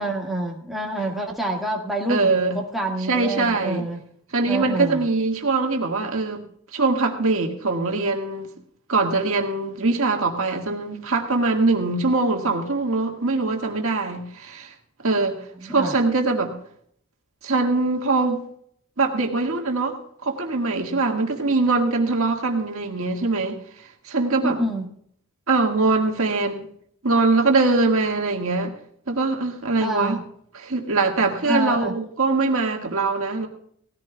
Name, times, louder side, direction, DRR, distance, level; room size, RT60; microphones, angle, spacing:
voice 1, 0.0-4.0 4.5-5.0 15.5-15.9 24.4-24.9 29.8-30.2 31.4-31.9, right 1 dB, ahead, -2 dB, 1.7 m, -27 dB
voice 2, 2.1-2.5 3.1-3.9 4.3-6.4 6.7-8.5 8.9-14.7 15.0-16.5 17.4-18.4 19.0-20.0 20.2-23.6 24.0-24.6 25.5-26.7 27.0-28.7 29.1-30.2 30.6-33.5, right 3 dB, 70° right, 2 dB, 1.8 m, -22 dB
18.5 x 15.0 x 2.3 m, 0.67 s
head